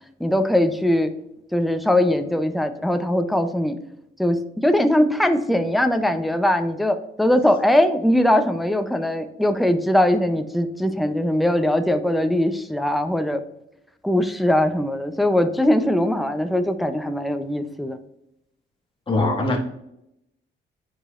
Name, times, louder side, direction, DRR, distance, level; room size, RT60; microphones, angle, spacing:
voice 1, 0.2-1.1 1.5-3.8 4.2-13.4 14.0-18.0, left 1 dB, ahead, 8 dB, 0.6 m, -21 dB
voice 2, 19.1-19.6, left 2 dB, 25° left, -1 dB, 1.7 m, -21 dB
9.4 x 5.0 x 2.5 m, 0.83 s
cardioid pair, 90°, 20 cm